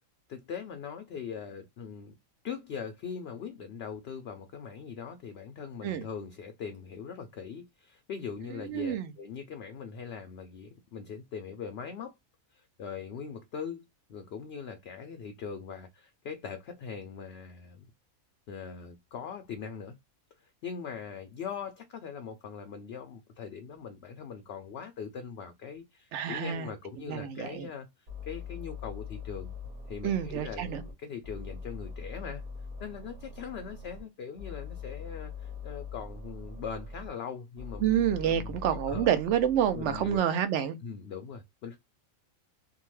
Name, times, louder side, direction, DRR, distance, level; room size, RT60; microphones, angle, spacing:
voice 1, 0.3-2.1 2.4-12.2 12.5-13.8 14.1-17.8 18.5-19.9 20.6-27.9 28.2-29.5 29.9-32.4 32.8-37.8 38.2-38.6 38.9-39.1 39.7-40.3 40.8-41.8, left 6 dB, 65° left, 0.6 m, -41 dB
voice 2, 8.7-9.1 26.1-26.7 27.1-27.7 30.0-30.8 37.8-40.8, right 9 dB, 65° right, 0.8 m, -28 dB
sound 1, 28.1-30.9 31.2-34.0 34.4-37.1 37.6-40.2, left 4 dB, 45° right, 1.2 m, -42 dB
2.7 x 2.2 x 3.0 m
omnidirectional pair, 1.4 m